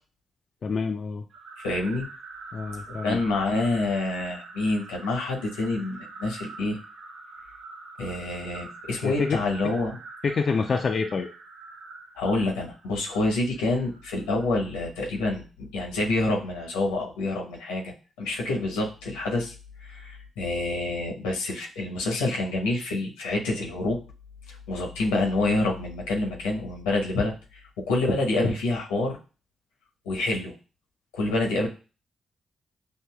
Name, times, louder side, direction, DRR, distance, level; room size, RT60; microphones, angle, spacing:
voice 1, 0.6-1.2 2.5-3.2 9.0-9.4 10.2-11.3, left 4 dB, 55° left, 3 dB, 0.4 m, -27 dB
sound 1, 1.3-14.7, right 3 dB, 70° right, 0.8 m, -45 dB
voice 2, 1.6-2.1 2.9-6.8 8.0-10.0 12.2-19.5 19.8-24.0 24.7-27.3 27.9-29.2 30.0-30.5 31.1-31.7, left 2 dB, 90° left, 0 dB, 0.9 m, -27 dB
6.5 x 2.6 x 2.2 m, 0.35 s
hypercardioid pair, 45°, 0 cm